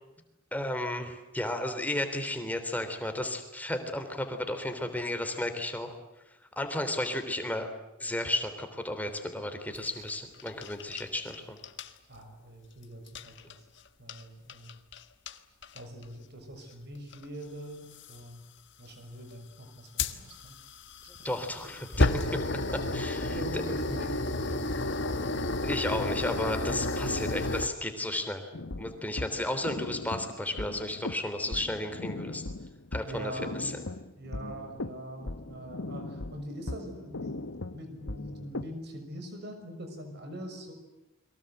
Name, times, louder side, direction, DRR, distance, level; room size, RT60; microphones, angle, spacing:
voice 1, 0.5-6.0 6.5-7.7 8.0-11.6 21.1-22.4 22.9-23.3 25.6-28.4 28.8-32.4 32.9-33.3 33.6-33.7, left 1 dB, 10° left, 6 dB, 3.4 m, -33 dB
sound 1, 9.8-11.4 11.6-11.9 13.1-13.5 14.1-14.2 14.5-15.0 15.3-15.4 15.6-16.0 17.1-17.2 18.0-18.2 20.0-27.7, left 2 dB, 60° left, 1.6 m, -31 dB
voice 2, 12.1-13.6 14.0-14.8 15.7-18.5 18.8-20.6 21.2-21.3 21.6-21.7 22.5-22.6 23.0-24.6 33.0-33.8 34.2-40.7, right 1 dB, 55° right, 6 dB, 6.2 m, -43 dB
sound 2, 28.5-38.7, left 2 dB, 80° left, 1.1 m, -39 dB
29.5 x 23.0 x 8.0 m, 0.98 s
head